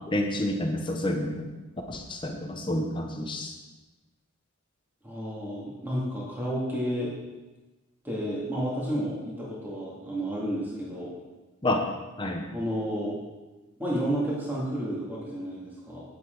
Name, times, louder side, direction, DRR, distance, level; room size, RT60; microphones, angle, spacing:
voice 1, 0.1-1.5 1.9-3.5 11.6-11.8 12.2-12.5, left 1 dB, 20° left, 3 dB, 0.7 m, -29 dB
voice 2, 5.0-7.1 8.0-11.1 12.5-13.2 13.8-16.0, equal, 10° right, -6 dB, 2.3 m, -31 dB
8.8 x 7.9 x 3.9 m, 1.2 s
head